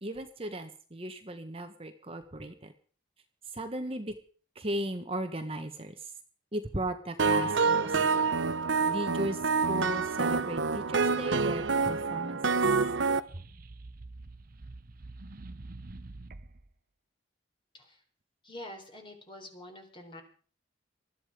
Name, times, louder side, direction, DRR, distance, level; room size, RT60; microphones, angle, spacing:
voice 1, 0.0-2.7 3.4-4.2 4.5-6.1 6.5-8.1 8.8-12.6 13.3-13.5, right 1 dB, 30° right, 6 dB, 1.3 m, -37 dB
sound 1, 7.2-13.2, right 4 dB, 80° right, 0.9 m, -27 dB
sound 2, 13.1-16.7, right 2 dB, 50° right, 0.8 m, -46 dB
voice 2, 18.4-20.2, left 1 dB, 25° left, 4 dB, 4.0 m, -46 dB
20.5 x 13.5 x 5.0 m, 0.41 s
head